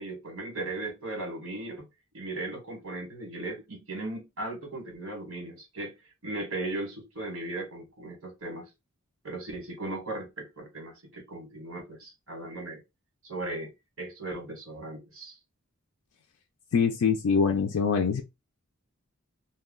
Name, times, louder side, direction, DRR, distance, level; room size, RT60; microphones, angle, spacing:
voice 1, 0.0-1.9 2.1-6.0 6.2-8.7 9.2-12.8 13.2-13.7 14.0-15.4, right 2 dB, 65° right, 1.2 m, -37 dB
voice 2, 16.7-18.2, left 6 dB, 85° left, 0.4 m, -24 dB
2.3 x 2.2 x 3.6 m
head